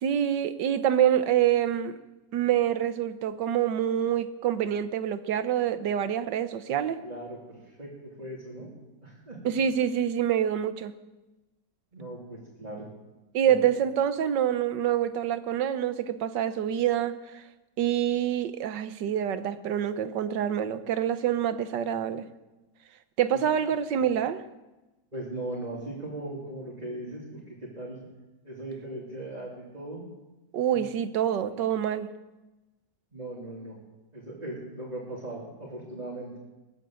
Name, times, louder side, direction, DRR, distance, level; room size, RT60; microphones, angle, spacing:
voice 1, 0.0-1.9 2.3-7.0 9.4-10.9 13.3-17.4 17.8-22.3 23.2-24.4 30.5-32.1, right 10 dB, 90° right, 12 dB, 1.6 m, -26 dB
voice 2, 7.0-8.7 9.0-9.4 11.9-12.9 13.4-13.5 25.1-28.0 28.4-30.1 30.7-30.9 31.2-31.6 33.1-33.8 34.1-36.3, right 1 dB, 25° right, -5 dB, 3.2 m, -39 dB
20.5 x 9.0 x 7.7 m, 1.1 s
omnidirectional pair, 1.8 m